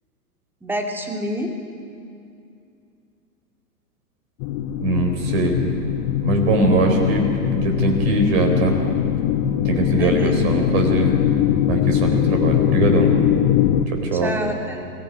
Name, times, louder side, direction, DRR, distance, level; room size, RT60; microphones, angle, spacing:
voice 1, 0.6-1.6 10.0-10.5 14.2-14.9, equal, 5° right, 3 dB, 2.3 m, -27 dB
sound 1, 4.4-13.9, left 10 dB, 30° left, 1.0 m, -21 dB
voice 2, 4.8-5.6 6.2-8.8 9.6-11.2 11.7-13.1 13.9-14.3, right 2 dB, 45° right, 3 dB, 4.1 m, -21 dB
25.0 x 16.0 x 9.5 m, 2.5 s
figure-of-eight pair, 105°, 46 cm